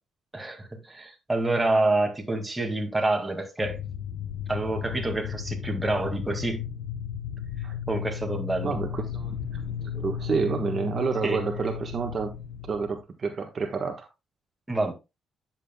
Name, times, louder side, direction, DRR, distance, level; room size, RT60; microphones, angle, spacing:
voice 1, 0.3-3.8 4.5-6.6 7.9-8.8 11.2-11.4 14.7-14.9, right 2 dB, 10° right, 2.0 m, -27 dB
sound 1, 3.6-13.0, left 8 dB, 85° left, 0.8 m, -34 dB
voice 2, 8.6-12.3 12.7-14.1, right 5 dB, 45° right, 1.2 m, -29 dB
9.9 x 7.3 x 2.2 m
cardioid pair, 90°, 0 cm